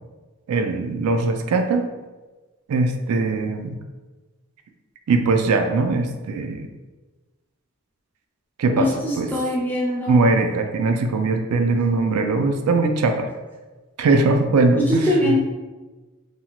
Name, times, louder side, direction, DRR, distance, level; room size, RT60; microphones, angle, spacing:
voice 1, 0.5-1.9 2.7-3.8 5.1-6.7 8.6-8.9 9.2-9.3 10.1-13.3 14.0-15.3, right 3 dB, 90° right, 5 dB, 0.3 m, -20 dB
voice 2, 8.8-10.5 14.7-15.4, left 1 dB, 10° left, -4 dB, 0.4 m, -22 dB
2.7 x 2.3 x 2.9 m, 1.2 s
head